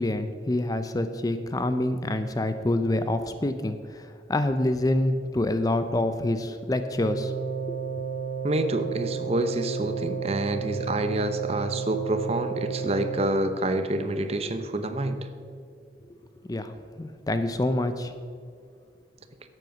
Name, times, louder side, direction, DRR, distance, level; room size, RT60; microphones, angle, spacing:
voice 1, 0.0-7.3 7.7-7.8 16.5-18.1, left 1 dB, 20° left, 10 dB, 0.4 m, -27 dB
sound 1, 6.9-13.2, right 6 dB, 10° right, 3.3 m, -32 dB
voice 2, 8.4-15.3, right 1 dB, 35° right, 9 dB, 0.7 m, -27 dB
12.0 x 7.9 x 6.0 m, 2.3 s
head